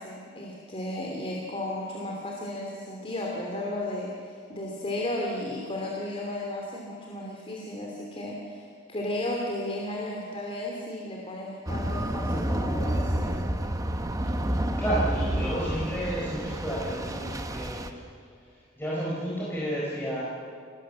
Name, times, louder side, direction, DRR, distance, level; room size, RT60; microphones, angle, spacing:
voice 1, 0.0-13.4, left 1 dB, 30° left, -1 dB, 2.8 m, -34 dB
sound 1, 11.7-17.9, right 1 dB, 20° right, 1.1 m, -29 dB
voice 2, 14.8-18.0 18.8-20.2, right 1 dB, 10° left, -7 dB, 4.8 m, -31 dB
26.5 x 18.5 x 7.5 m, 2.3 s
head